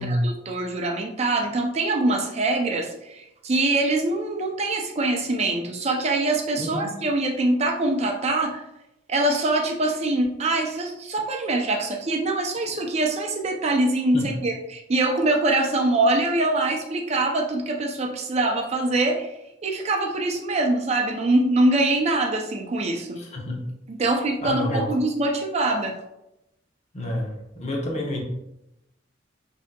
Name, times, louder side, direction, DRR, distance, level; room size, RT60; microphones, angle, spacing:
voice 1, 0.0-8.6 9.1-19.3 19.6-23.2 23.9-25.9, right 2 dB, 35° right, 2 dB, 0.4 m, -24 dB
voice 2, 6.6-6.9 14.1-14.3 23.2-23.6 24.4-24.9 26.9-28.2, left 1 dB, 35° left, 0 dB, 0.8 m, -28 dB
5.9 x 2.7 x 2.2 m, 0.86 s
head